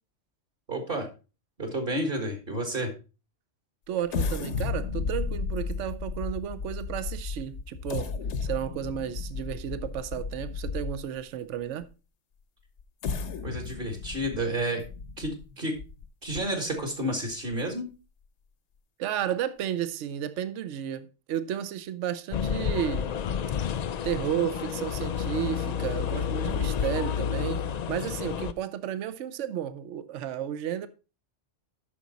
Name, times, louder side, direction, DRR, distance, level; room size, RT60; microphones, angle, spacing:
voice 1, 0.7-1.1 1.6-2.9 13.4-14.8 15.2-15.7 16.2-17.9, right 1 dB, 45° right, 1.7 m, -30 dB
voice 2, 3.9-8.1 8.4-11.9 19.0-23.1 24.0-27.6 27.9-30.9, right 10 dB, 75° right, 1.0 m, -32 dB
sound 1, 4.1-11.2 11.8-11.9 12.8-16.3 16.8-16.9 17.3-17.5, left 5 dB, 70° left, 1.1 m, -34 dB
sound 2, 22.3-28.5, left 7 dB, 85° left, 0.3 m, -30 dB
8.5 x 6.0 x 4.0 m
omnidirectional pair, 1.3 m